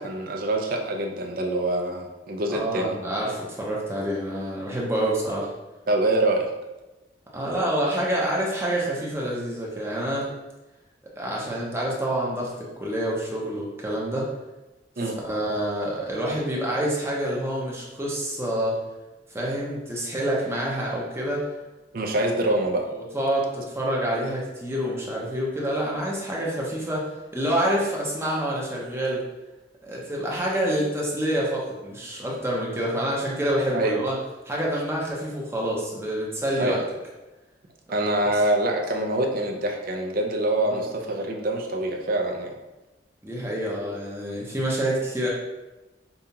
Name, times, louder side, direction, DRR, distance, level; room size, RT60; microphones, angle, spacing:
voice 1, 0.0-2.9 5.9-6.5 15.0-15.2 21.9-22.9 33.7-34.0 36.6-36.8 37.9-42.5, right 1 dB, 55° right, 2 dB, 0.5 m, -25 dB
voice 2, 2.6-5.5 7.3-10.3 11.2-14.3 15.2-18.8 19.3-21.5 22.2-22.6 22.9-29.2 29.8-34.2 34.4-36.8 38.2-38.3 40.7-40.8 43.2-45.3, right 1 dB, 15° right, -4 dB, 0.8 m, -27 dB
5.4 x 2.3 x 2.8 m, 1.1 s
head